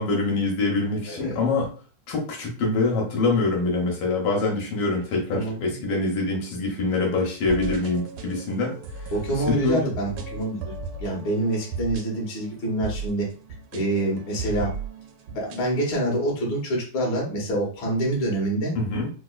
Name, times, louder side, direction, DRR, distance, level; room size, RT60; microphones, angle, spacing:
voice 1, 0.0-1.7 2.1-9.1 9.5-9.9 18.8-19.1, left 3 dB, 80° left, -1 dB, 1.7 m, -25 dB
voice 2, 1.1-1.4 5.3-5.8 9.1-10.7 11.0-13.3 13.7-14.7 15.3-18.7, right 1 dB, 55° left, -3 dB, 1.6 m, -26 dB
sound 1, 7.4-15.7, right 3 dB, 80° right, 1.4 m, -36 dB
4.0 x 2.4 x 2.3 m, 0.39 s
omnidirectional pair, 2.4 m